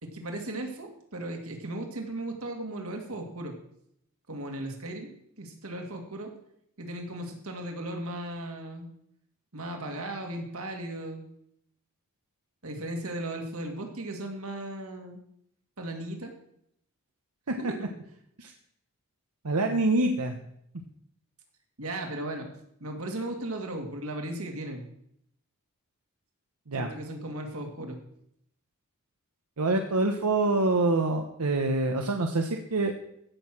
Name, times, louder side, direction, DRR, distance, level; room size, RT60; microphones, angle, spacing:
voice 1, 0.0-3.5 4.3-5.1 5.4-6.3 6.8-8.9 9.5-11.2 12.6-15.2 15.8-16.3 17.6-17.9 21.8-22.5 22.8-24.9 26.7-28.0, right 1 dB, 70° right, 3 dB, 2.4 m, -36 dB
voice 2, 19.4-20.4 26.7-26.9 29.6-32.9, right 2 dB, 90° right, 4 dB, 1.1 m, -26 dB
15.5 x 6.7 x 6.1 m, 0.74 s
head